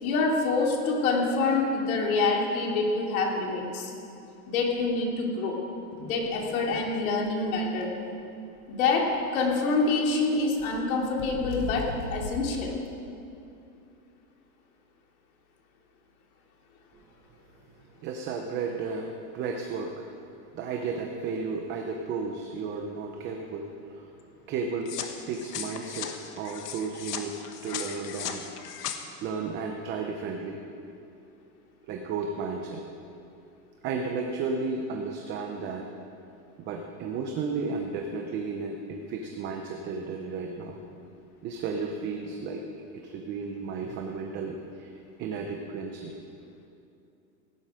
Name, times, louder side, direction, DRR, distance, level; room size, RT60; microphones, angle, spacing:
voice 1, 0.0-3.9 4.5-5.6 6.0-7.9 8.8-12.7, left 3 dB, 65° left, 0 dB, 3.1 m, -26 dB
sound 1, 5.9-6.9 7.2-7.3 7.6-7.8 9.0-10.1 10.6-12.9, left 4 dB, 20° left, 0.3 m, -40 dB
voice 2, 18.0-20.1 20.5-24.1 24.5-24.9 25.3-27.4 27.6-28.4 29.2-30.6 31.8-32.8 33.8-35.9 36.6-40.8 41.4-42.6 43.0-44.9 45.2-46.1, right 4 dB, 25° right, 3 dB, 0.8 m, -33 dB
sound 2, 24.9-29.0, left 8 dB, 90° left, 1.6 m, -37 dB
17.0 x 11.0 x 5.0 m, 2.6 s
supercardioid pair, 160°, 45 cm